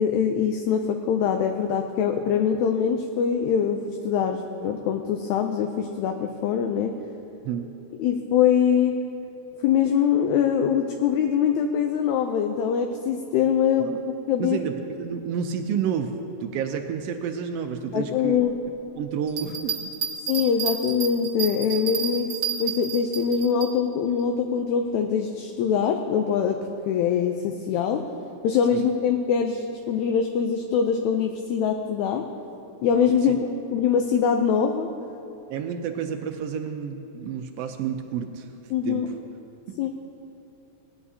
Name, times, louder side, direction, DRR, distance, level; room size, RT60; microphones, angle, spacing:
voice 1, 0.0-6.9 8.0-9.0 9.6-14.0 14.3-14.6 17.9-18.6 20.3-22.3 22.6-26.6 26.9-28.0 28.4-32.2 32.8-34.9 38.7-39.1 39.8-39.9, left 7 dB, 80° left, 4 dB, 1.9 m, -23 dB
voice 2, 14.4-18.4 18.9-19.8 28.7-28.9 33.3-33.4 35.5-38.5 38.8-39.1 39.7-39.8, right 7 dB, 85° right, 5 dB, 1.4 m, -30 dB
Bell, 19.3-23.7 24.2-24.3, right 7 dB, 55° right, 1.1 m, -30 dB
19.0 x 11.0 x 2.8 m, 2.7 s
omnidirectional pair, 3.4 m